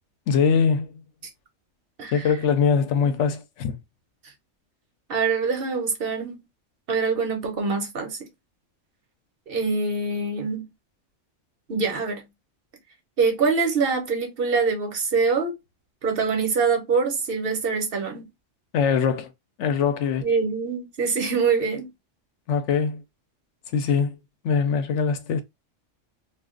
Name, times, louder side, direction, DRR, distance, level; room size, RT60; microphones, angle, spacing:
voice 1, 0.3-0.9 2.1-3.8 18.7-19.3 19.6-20.3 22.5-23.0 23.7-24.2 24.4-25.4, left 6 dB, 75° left, 0.9 m, -22 dB
voice 2, 2.0-2.3 3.0-3.2 5.1-6.4 6.9-8.2 9.5-10.7 11.7-12.2 13.2-15.5 16.0-18.3 20.2-21.9, right 4 dB, 55° right, 1.0 m, -24 dB
2.5 x 2.4 x 3.6 m
omnidirectional pair, 1.3 m